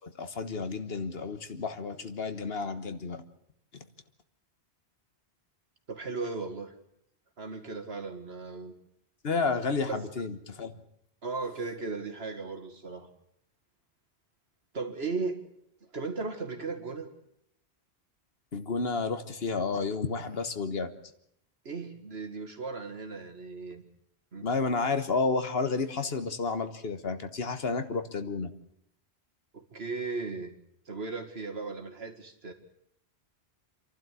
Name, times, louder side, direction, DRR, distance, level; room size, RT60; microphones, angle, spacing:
voice 1, 0.0-3.2 9.2-10.8 18.5-20.9 24.4-28.5, left 4 dB, 70° left, 9 dB, 1.5 m, -31 dB
voice 2, 5.9-6.7 7.4-8.7 9.5-10.0 11.2-13.1 14.7-15.4 15.8-17.1 21.6-23.8 24.3-24.5 29.5-30.6 30.9-32.5, right 4 dB, 70° right, 5 dB, 2.3 m, -36 dB
28.0 x 12.0 x 8.4 m, 0.73 s
omnidirectional pair, 1.1 m